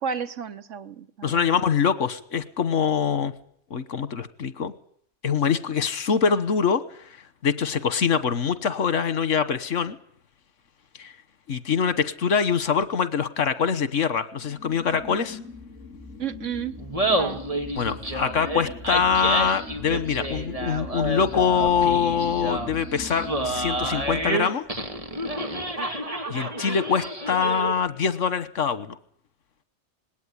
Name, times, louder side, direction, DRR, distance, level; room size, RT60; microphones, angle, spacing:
voice 1, 0.0-1.6 16.2-16.7 17.1-17.4, right 7 dB, 80° right, 12 dB, 1.5 m, -32 dB
voice 2, 1.2-3.3 3.7-4.7 5.2-7.1 7.4-10.0 11.0-11.1 11.5-15.4 17.7-24.6 26.3-29.0, left 6 dB, 85° left, 15 dB, 1.6 m, -24 dB
sound 1, 14.4-24.3, left 3 dB, 5° right, 7.7 m, -39 dB
Laughter, 16.8-27.8, right 1 dB, 30° right, 2.8 m, -29 dB
20.0 x 18.0 x 10.0 m, 0.64 s
omnidirectional pair, 1.2 m